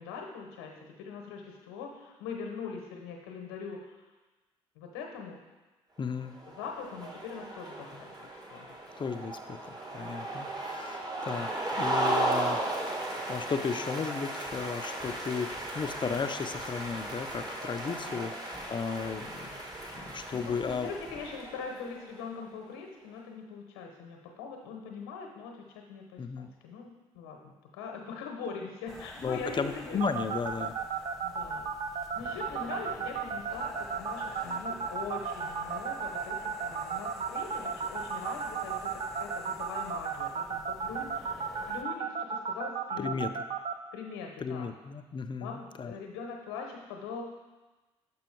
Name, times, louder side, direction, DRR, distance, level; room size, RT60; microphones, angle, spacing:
voice 1, 0.0-4.0 4.7-5.4 6.5-8.7 10.2-10.4 17.9-18.3 20.3-30.0 31.2-43.2 43.9-44.7 45.4-47.2, left 5 dB, 80° left, 2 dB, 0.9 m, -42 dB
voice 2, 6.0-6.4 7.9-8.0 9.0-11.5 11.8-12.6 12.9-13.0 13.3-19.6 19.9-20.9 26.2-26.5 29.2-30.8 43.0-43.3 44.4-45.9, left 5 dB, 35° left, 9 dB, 0.6 m, -34 dB
sound 1, 6.3-22.0, right 1 dB, 30° right, 1.5 m, -35 dB
sound 2, 28.9-41.8, equal, 5° left, 1.0 m, -48 dB
pi dtmf, 30.0-43.7, right 7 dB, 45° right, 0.6 m, -33 dB
6.2 x 5.5 x 4.5 m, 1.2 s
hypercardioid pair, 55°, 14 cm